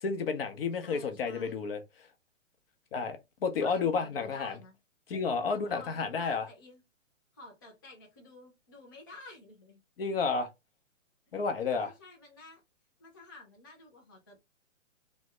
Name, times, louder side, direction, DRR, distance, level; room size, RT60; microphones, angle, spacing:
voice 1, 0.0-1.8 2.9-4.6 5.1-6.5 10.0-10.5 11.3-11.9, left 5 dB, 50° left, 0.8 m, -31 dB
voice 2, 0.8-1.7 3.6-4.7 5.5-6.8 7.3-9.8 11.6-12.6 13.0-14.4, left 2 dB, 20° left, 0.3 m, -51 dB
3.4 x 2.1 x 3.1 m
figure-of-eight pair, 130°, 39 cm